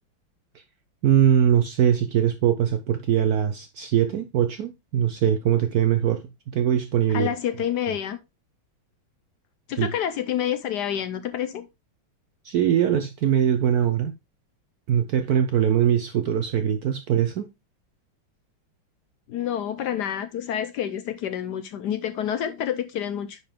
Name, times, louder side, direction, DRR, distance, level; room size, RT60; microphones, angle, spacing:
voice 1, 1.0-6.2 6.5-7.3 9.8-9.9 12.4-14.1 14.9-17.5, right 9 dB, 70° right, 0.9 m, -22 dB
voice 2, 7.1-8.2 9.7-11.7 19.3-23.4, left 10 dB, 70° left, 1.1 m, -28 dB
9.6 x 4.1 x 3.6 m
omnidirectional pair, 2.2 m